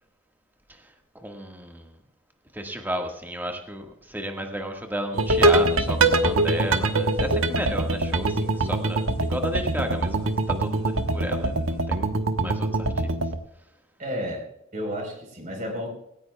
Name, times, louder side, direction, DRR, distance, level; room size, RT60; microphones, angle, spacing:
voice 1, 0.7-2.0 2.5-12.1 12.4-13.1, right 1 dB, 10° right, 3 dB, 1.7 m, -33 dB
sound 1, 5.1-13.4, right 2 dB, 90° right, 1.2 m, -23 dB
voice 2, 14.0-14.4 14.7-15.9, equal, 40° right, 1 dB, 4.3 m, -31 dB
18.5 x 17.5 x 2.3 m, 0.82 s
head